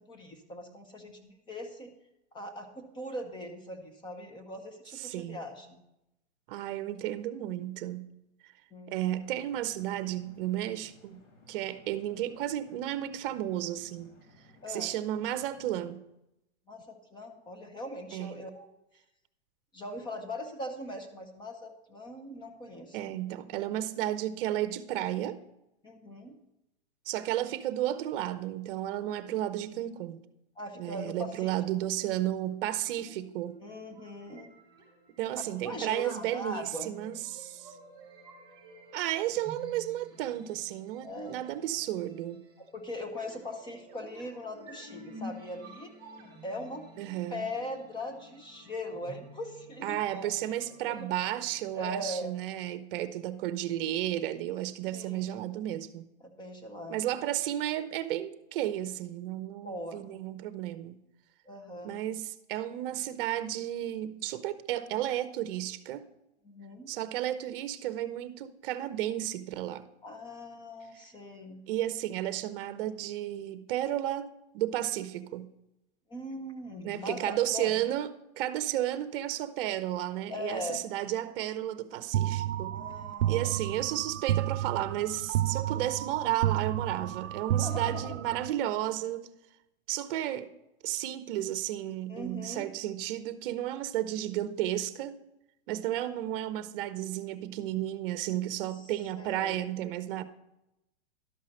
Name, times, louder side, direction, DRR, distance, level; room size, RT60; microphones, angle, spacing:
voice 1, 0.0-1.9 2.3-5.8 8.7-9.0 14.6-15.0 16.7-18.7 19.7-23.1 25.8-26.4 30.6-31.5 33.6-34.5 35.6-36.9 41.0-41.4 42.6-45.9 46.4-46.8 47.3-50.4 50.9-51.1 51.7-52.4 54.9-55.5 56.2-57.0 59.6-60.1 61.4-62.0 66.4-66.9 70.0-71.6 76.1-77.8 80.3-80.8 82.7-83.5 87.6-88.2 92.1-92.7 99.2-99.6, left 1 dB, 15° left, 0.8 m, -40 dB
voice 2, 5.0-5.4 6.5-8.1 8.9-11.2 11.5-14.1 14.7-16.0 18.1-18.4 22.9-25.4 27.1-30.2 30.8-33.6 35.2-37.7 38.9-42.4 47.0-47.4 49.8-56.0 56.9-61.0 61.8-66.0 66.9-69.8 71.7-75.5 76.8-78.1 78.4-82.8 83.3-89.3 89.9-90.5 90.8-95.2 95.7-100.2, right 13 dB, 50° right, 0.8 m, -33 dB
sound 1, 9.0-16.0, left 2 dB, 85° left, 2.8 m, -59 dB
sound 2, 32.6-52.6, equal, 10° right, 3.2 m, -52 dB
sound 3, 82.1-88.5, right 12 dB, 90° right, 0.6 m, -31 dB
11.5 x 5.5 x 6.4 m
hypercardioid pair, 145°, 36 cm